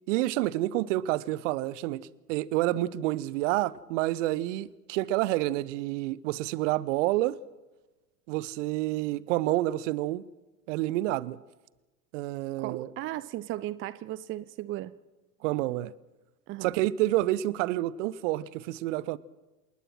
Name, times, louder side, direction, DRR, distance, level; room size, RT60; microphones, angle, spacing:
voice 1, 0.1-7.4 8.3-10.3 10.7-11.4 12.1-12.9 15.4-15.9 16.6-19.2, right 16 dB, 50° right, 1.0 m, -28 dB
voice 2, 12.6-14.9 16.5-16.7, right 15 dB, 25° right, 0.6 m, -36 dB
28.0 x 19.5 x 6.2 m
figure-of-eight pair, 85°, 49 cm